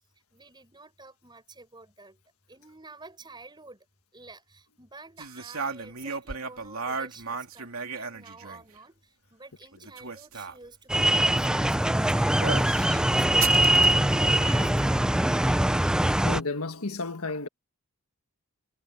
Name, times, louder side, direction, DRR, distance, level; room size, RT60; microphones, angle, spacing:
voice 1, 0.3-2.2 2.5-3.8 4.1-15.1, right 3 dB, 20° right, 7.6 m, -49 dB
sound 1, 5.2-8.8 9.7-10.6 12.4-12.9 13.4-14.8, right 5 dB, 65° right, 3.1 m, -35 dB
sound 2, 10.9-16.4, right 1 dB, 5° right, 0.3 m, -22 dB
voice 2, 16.2-17.5, left 3 dB, 70° left, 1.6 m, -32 dB
head